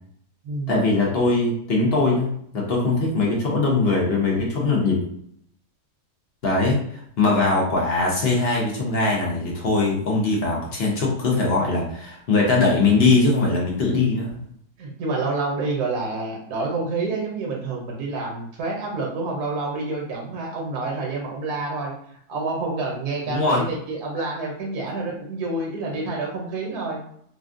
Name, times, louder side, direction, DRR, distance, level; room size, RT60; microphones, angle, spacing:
voice 1, 0.7-5.0 6.4-14.4 23.3-23.6, left 3 dB, 55° left, -2 dB, 0.7 m, -21 dB
voice 2, 14.8-21.9 22.3-27.0, right 3 dB, 65° right, -1 dB, 1.3 m, -28 dB
3.5 x 2.3 x 2.5 m, 0.68 s
omnidirectional pair, 1.8 m